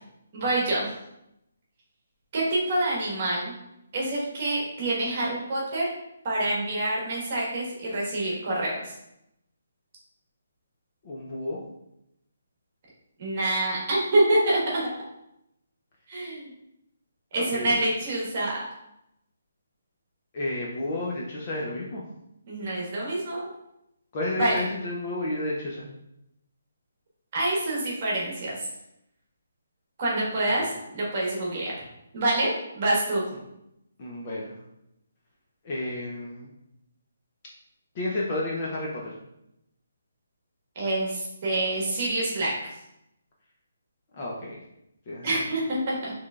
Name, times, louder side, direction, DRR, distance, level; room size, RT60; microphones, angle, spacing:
voice 1, 0.3-0.9 2.3-3.5 3.9-5.9 6.2-8.9 13.2-14.8 16.1-16.5 17.3-18.6 22.5-23.5 24.4-24.7 27.3-28.7 30.0-31.7 32.1-33.2 40.7-42.5 45.2-46.1, right 1 dB, 25° right, -4 dB, 1.2 m, -26 dB
voice 2, 11.0-11.6 17.4-17.9 20.3-22.0 24.1-25.9 30.5-30.7 34.0-34.5 35.6-36.5 38.0-39.2 44.2-44.6 45.1-45.3, left 1 dB, 20° left, -3 dB, 0.5 m, -31 dB
5.9 x 3.2 x 2.3 m, 0.83 s
hypercardioid pair, 180°, 0 cm